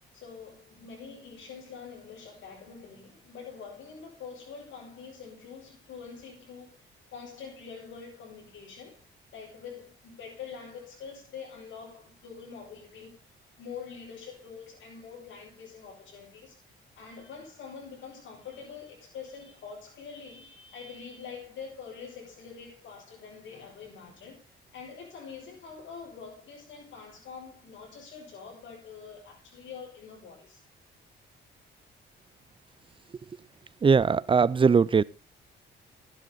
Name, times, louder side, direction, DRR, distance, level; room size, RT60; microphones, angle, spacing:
voice 1, 0.1-9.0 9.3-13.2 13.6-16.6 17.0-30.6, left 6 dB, 70° left, 6.8 m, -45 dB
voice 2, 33.8-35.0, right 5 dB, 25° right, 0.5 m, -20 dB
12.5 x 10.5 x 4.0 m
cardioid pair, 90°, 20 cm